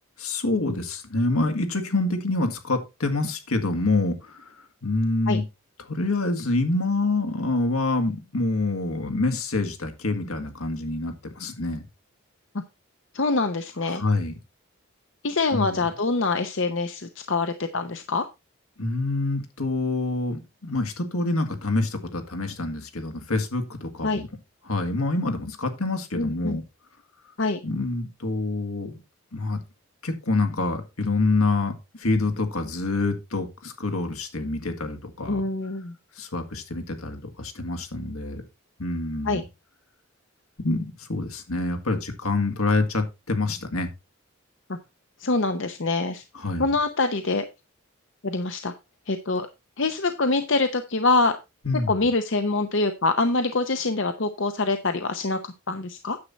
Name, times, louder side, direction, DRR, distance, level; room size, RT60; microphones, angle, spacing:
voice 1, 0.2-4.6 4.8-5.4 5.9-11.8 13.9-14.3 15.5-15.8 18.8-24.3 24.7-26.6 27.6-29.0 29.3-29.6 30.0-35.4 36.2-38.4 38.8-39.5 40.6-43.9 46.3-46.7 51.7-52.1, left 2 dB, 75° left, 6 dB, 2.0 m, -26 dB
voice 2, 13.1-14.0 15.2-18.3 24.0-24.2 26.2-26.6 27.4-27.6 35.3-35.9 39.2-39.4 44.7-44.8 45.2-46.2 46.6-47.4 48.2-48.7 49.1-49.5 49.8-51.4 51.9-56.2, left 3 dB, 55° left, 8 dB, 0.8 m, -25 dB
9.7 x 7.5 x 4.0 m, 0.25 s
head